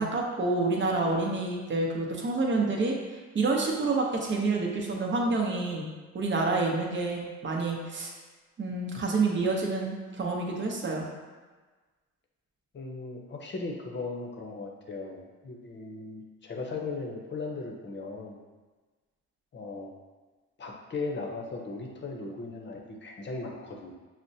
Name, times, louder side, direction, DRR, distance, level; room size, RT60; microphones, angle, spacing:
voice 1, 0.0-2.9 3.3-5.9 6.1-8.1 8.6-11.1, right 3 dB, 40° right, -1 dB, 0.8 m, -28 dB
voice 2, 12.7-18.4 19.5-19.9 20.6-23.9, left 3 dB, 35° left, 1 dB, 0.7 m, -37 dB
5.9 x 2.1 x 2.7 m, 1.3 s
cardioid pair, 90°, 30 cm